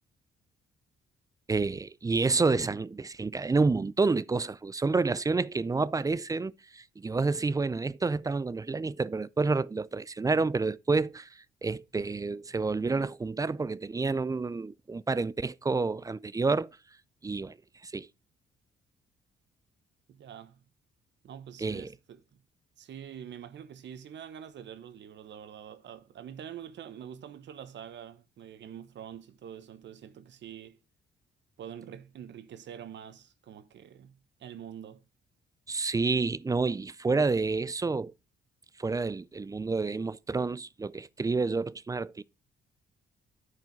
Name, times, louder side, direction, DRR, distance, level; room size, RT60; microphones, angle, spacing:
voice 1, 1.5-16.7 17.2-17.6 17.8-18.1 21.6-21.9 35.7-38.1 38.8-42.2, right 3 dB, 15° right, 0.4 m, -29 dB
voice 2, 20.1-20.6 21.2-22.4 22.8-30.8 31.6-35.0, right 9 dB, 65° right, 1.1 m, -45 dB
9.3 x 4.9 x 4.6 m
cardioid pair, 90°, 20 cm